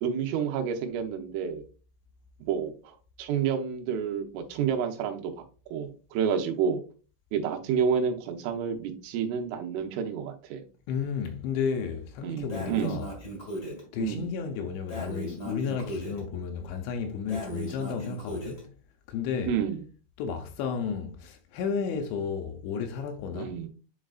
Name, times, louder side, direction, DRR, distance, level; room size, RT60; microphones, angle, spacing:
voice 1, 0.0-1.6 2.4-5.4 5.7-6.8 7.3-10.6 12.2-13.0 14.0-14.3 19.5-19.8 23.3-23.7, right 7 dB, 90° right, 3.4 m, -29 dB
voice 2, 10.9-13.1 13.9-18.7 19.1-19.5 20.2-23.5, left 6 dB, 80° left, 2.8 m, -32 dB
Breathing, 12.5-13.8 14.9-16.2 17.3-18.6, right 1 dB, 60° left, 0.8 m, -37 dB
11.0 x 3.7 x 2.4 m
omnidirectional pair, 5.5 m